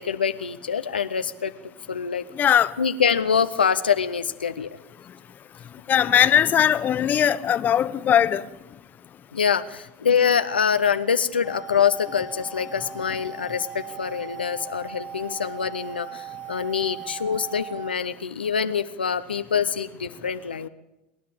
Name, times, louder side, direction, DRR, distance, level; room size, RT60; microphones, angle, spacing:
voice 1, 0.0-1.5 1.9-2.2 2.8-4.7 9.3-20.7, left 7 dB, 85° left, 9 dB, 0.8 m, -25 dB
voice 2, 2.4-2.7 5.9-8.4, left 9 dB, 35° left, 13 dB, 1.1 m, -19 dB
sound 1, 11.4-17.9, right 7 dB, 60° right, 5.7 m, -39 dB
27.0 x 11.0 x 8.7 m, 0.95 s
hypercardioid pair, 85°, 5 cm